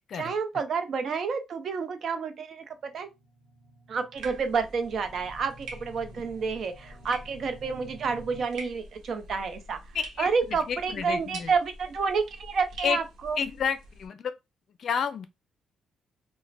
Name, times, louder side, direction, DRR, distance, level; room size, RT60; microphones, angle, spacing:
voice 1, 0.1-3.1 3.9-9.8 10.2-13.4, right 5 dB, 55° right, 0.6 m, -29 dB
sound 1, 2.8-8.5, right 1 dB, 35° right, 1.4 m, -52 dB
sound 2, 4.1-14.1, right 1 dB, 85° right, 1.0 m, -46 dB
voice 2, 9.9-11.5 12.8-13.0 13.4-14.3 14.8-15.3, left 7 dB, 60° left, 0.4 m, -30 dB
2.4 x 2.1 x 3.2 m
cardioid pair, 90°, 0 cm